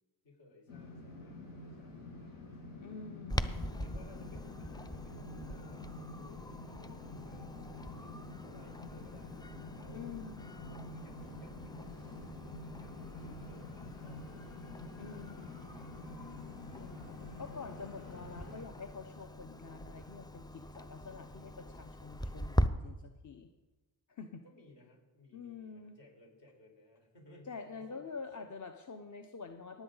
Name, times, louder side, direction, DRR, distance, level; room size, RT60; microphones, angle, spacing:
voice 1, 0.2-2.4 3.7-7.6 7.9-9.4 9.7-10.2 10.7-12.3 12.7-14.6 17.2-17.4 18.0-18.7 24.4-28.5, left 1 dB, 60° left, -1 dB, 5.0 m, -60 dB
sound 1, 0.7-18.6, left 2 dB, 90° left, 3.7 m, -48 dB
voice 2, 2.8-3.7 9.9-10.7 15.0-15.7 16.7-23.5 24.1-24.4 25.3-26.0 27.5-29.8, left 5 dB, 40° left, 6 dB, 0.9 m, -47 dB
Clock, 3.3-22.7, equal, 10° left, 0.6 m, -42 dB
18.0 x 8.0 x 4.0 m, 1.2 s
cardioid pair, 55°, 48 cm